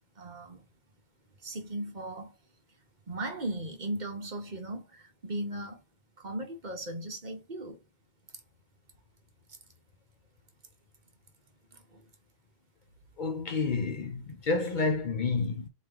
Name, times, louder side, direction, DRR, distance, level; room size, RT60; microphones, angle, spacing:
voice 1, 0.2-0.6 1.4-2.3 3.1-5.8 6.2-7.8 11.7-12.0, right 1 dB, 45° right, 1.0 m, -37 dB
voice 2, 13.2-15.7, left 4 dB, 55° left, 0.7 m, -29 dB
4.1 x 3.1 x 3.7 m
omnidirectional pair, 1.1 m